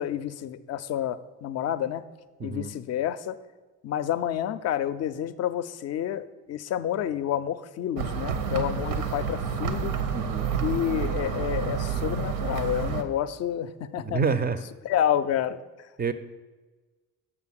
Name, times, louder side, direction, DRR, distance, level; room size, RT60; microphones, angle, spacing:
voice 1, 0.0-2.0 2.4-3.4 3.8-9.9 10.6-14.2 14.8-15.6, left 10 dB, 35° left, 13 dB, 0.5 m, -29 dB
voice 2, 2.4-2.7 10.1-10.5 14.0-14.6 16.0-16.1, right 5 dB, 20° right, 12 dB, 0.5 m, -27 dB
sound 1, 8.0-13.0, right 6 dB, 65° right, 0.8 m, -29 dB
6.9 x 5.7 x 6.2 m, 1.3 s
figure-of-eight pair, 45°, 44 cm